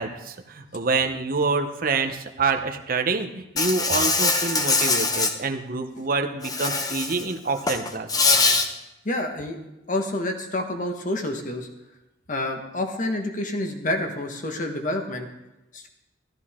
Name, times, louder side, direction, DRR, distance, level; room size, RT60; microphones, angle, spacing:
voice 1, 0.0-8.4, right 4 dB, 50° right, 5 dB, 0.9 m, -27 dB
Insect, 3.6-5.3 6.4-7.2 7.6-8.7, left 3 dB, 20° left, 0.8 m, -22 dB
voice 2, 9.0-9.6 9.9-11.7 12.3-15.3 15.7-15.9, left 1 dB, 45° left, 4 dB, 1.5 m, -28 dB
13.5 x 13.5 x 3.7 m, 0.96 s
head